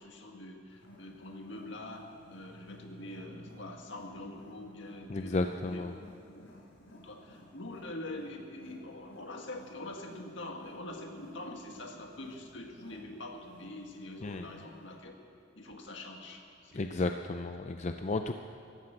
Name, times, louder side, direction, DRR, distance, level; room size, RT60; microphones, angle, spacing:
voice 1, 0.0-5.9 6.3-6.4 6.9-15.1 15.6-17.2, left 1 dB, 70° left, 3 dB, 1.8 m, -44 dB
Wild animals, 0.7-15.0, left 1 dB, 90° left, 3.4 m, -56 dB
voice 2, 5.1-6.0 14.2-14.5 16.7-18.4, left 2 dB, 35° left, 7 dB, 0.4 m, -33 dB
14.5 x 12.0 x 7.8 m, 2.7 s
head